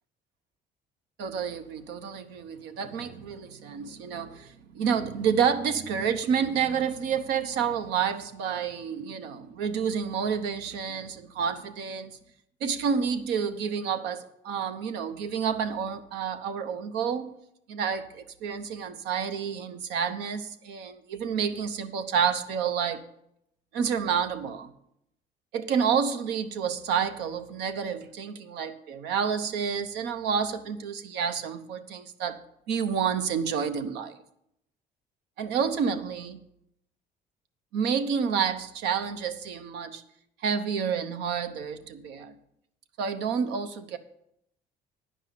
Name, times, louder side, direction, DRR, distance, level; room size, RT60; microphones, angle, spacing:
voice 1, 1.2-12.1 12.6-17.3 17.7-23.0 23.7-24.7 25.5-32.4 32.7-34.2 35.4-36.4 37.7-40.0 40.4-42.4 43.0-44.0, right 7 dB, 85° right, 0.9 m, -29 dB
9.8 x 5.5 x 8.3 m
cardioid pair, 110°, 17 cm